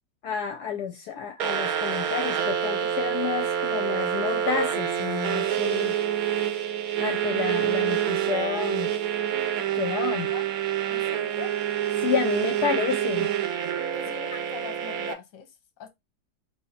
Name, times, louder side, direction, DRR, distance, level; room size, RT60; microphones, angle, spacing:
voice 1, 0.2-6.0 7.0-8.9 9.7-10.3 12.0-13.3 14.3-14.4, left 8 dB, 70° left, 1.1 m, -30 dB
sound 1, 1.4-15.1, right 9 dB, 65° right, 1.0 m, -27 dB
voice 2, 10.9-11.5 13.9-15.9, left 8 dB, 55° left, 1.1 m, -42 dB
3.3 x 2.7 x 3.9 m
omnidirectional pair, 1.8 m